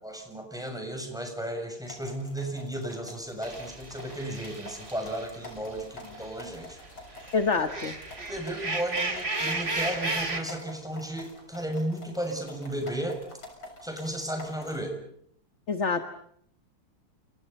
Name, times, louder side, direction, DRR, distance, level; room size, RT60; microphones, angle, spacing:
voice 1, 0.0-6.8 8.3-13.2 13.8-14.9, right 1 dB, ahead, 4 dB, 7.0 m, -34 dB
sound 1, 1.9-14.9, left 2 dB, 80° left, 7.3 m, -47 dB
sound 2, 3.4-6.3 6.7-10.4, right 2 dB, 30° right, 3.5 m, -34 dB
voice 2, 7.3-7.9 15.7-16.0, left 4 dB, 35° left, 8 dB, 1.5 m, -26 dB
30.0 x 28.5 x 5.6 m, 0.67 s
omnidirectional pair, 2.3 m